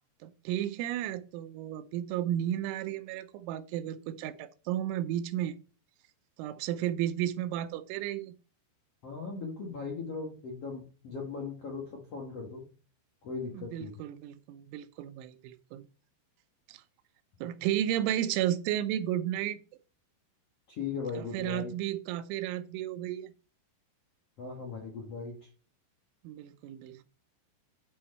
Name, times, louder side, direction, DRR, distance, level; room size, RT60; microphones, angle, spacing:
voice 1, 0.2-5.6 6.4-8.3 13.5-15.9 16.7-16.8 17.4-19.6 21.2-23.3 26.2-27.0, right 12 dB, 90° right, 3.2 m, -33 dB
voice 2, 9.0-12.7 13.2-14.0 20.7-21.7 24.4-25.5, left 4 dB, 50° left, 1.9 m, -38 dB
10.5 x 4.7 x 4.3 m
omnidirectional pair, 5.3 m